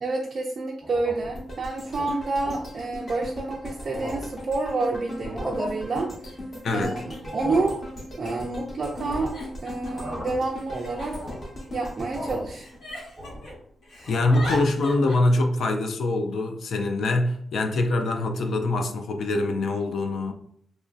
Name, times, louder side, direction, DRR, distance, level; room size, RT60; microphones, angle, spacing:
voice 1, 0.0-6.3 6.7-7.8 8.2-9.3 9.6-11.2 11.7-12.7, right 3 dB, 40° right, 0.3 m, -28 dB
sound 1, 0.8-1.4 1.8-2.0 2.4-2.7 3.3-3.4 3.7-4.4 5.1-5.7 7.1-7.8 8.9-9.4 9.8-10.5 10.9-11.5 12.1-12.6 12.9-13.6 14.0-14.6, equal, ahead, 0.8 m, -37 dB
sound 2, 1.3-13.5 13.9-14.0, left 1 dB, 35° left, 0.9 m, -38 dB
Giggle, 6.4-6.5 7.5-7.6 7.8-8.4 9.0-10.1 10.7-12.0 12.5-13.5 13.8-15.2, left 2 dB, 85° left, 1.2 m, -39 dB
voice 2, 6.6-7.1 14.1-20.3, left 2 dB, 65° left, 0.3 m, -24 dB
3.0 x 2.5 x 2.3 m
wide cardioid pair, 155°, 0 cm